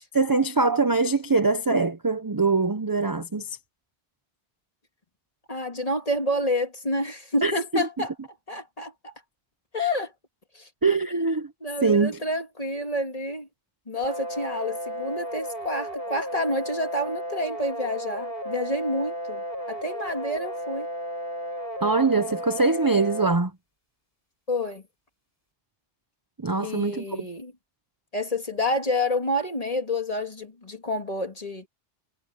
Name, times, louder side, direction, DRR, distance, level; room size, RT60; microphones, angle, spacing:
voice 1, 0.1-3.6 7.4-7.9 10.8-11.5 11.8-12.2 21.8-23.5 26.4-27.0, right 3 dB, 25° right, 0.6 m, -23 dB
voice 2, 5.5-8.1 8.5-9.1 9.7-10.1 10.5-10.7 11.1-11.3 11.6-13.5 13.9-20.9 24.5-24.8 26.6-27.5 28.1-31.7, left 1 dB, 30° left, 2.4 m, -29 dB
sound 1, 14.0-23.4, equal, 50° left, 5.9 m, -34 dB
omnidirectional pair, 1.2 m